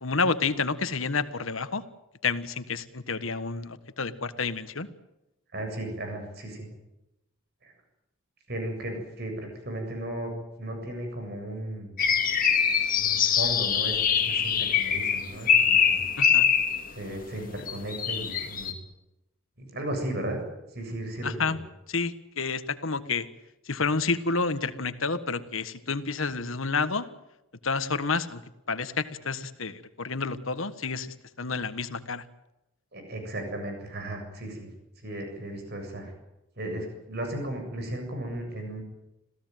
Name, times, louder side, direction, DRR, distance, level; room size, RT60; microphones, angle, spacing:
voice 1, 0.0-1.8 2.2-4.9 16.2-16.5 21.2-21.6 21.9-23.3 23.7-27.0 27.6-28.4 28.7-32.2, left 4 dB, 75° left, 12 dB, 1.6 m, -29 dB
voice 2, 5.5-6.7 7.6-7.7 8.5-10.3 10.6-11.9 13.0-16.0 17.0-18.7 19.6-20.4 20.7-21.3 32.9-34.7 35.0-36.1 36.6-38.8, right 1 dB, 50° right, 5 dB, 7.6 m, -35 dB
sound 1, 12.0-16.9 17.7-18.7, left 7 dB, 40° left, 2.4 m, -23 dB
27.5 x 16.5 x 9.3 m, 0.94 s
head